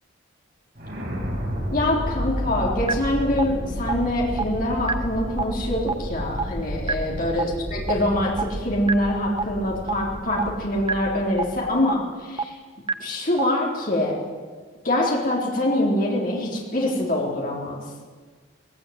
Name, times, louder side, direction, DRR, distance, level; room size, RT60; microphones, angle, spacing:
sound 1, 0.8-11.8, equal, 50° right, 6.7 m, -32 dB
voice 1, 1.7-12.6 13.0-14.2 14.8-17.8, left 1 dB, 45° left, -3 dB, 3.8 m, -24 dB
sound 2, 2.9-3.0 3.4-3.5 3.9-4.0 4.4-4.5 4.9-5.0 5.4-5.5 5.9-6.0 6.4-6.5 6.9-7.0 7.4-7.5 7.9-8.0 8.4-8.5 8.9-9.0 9.4-9.5 9.9-10.0 10.4-10.5 10.9-11.0 11.4-11.5 11.9-12.0 12.4-12.5 12.9-13.0 13.4-13.5, right 4 dB, 25° right, 0.7 m, -23 dB
18.5 x 17.5 x 9.4 m, 1.5 s
head